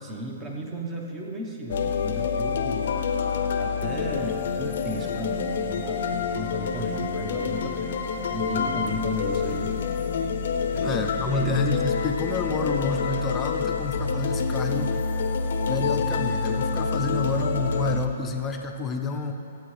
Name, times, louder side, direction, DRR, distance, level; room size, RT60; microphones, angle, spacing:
voice 1, 0.0-2.9 3.6-8.0 8.3-9.7 10.7-11.0 11.3-11.8 17.0-17.2, equal, 15° right, 0 dB, 1.1 m, -34 dB
sound 1, 1.7-18.0, left 5 dB, 65° left, 0.6 m, -27 dB
voice 2, 10.8-15.0 15.7-19.3, left 3 dB, 15° left, 3 dB, 0.6 m, -29 dB
13.5 x 8.4 x 3.3 m, 3.0 s
hypercardioid pair, 150°, 0 cm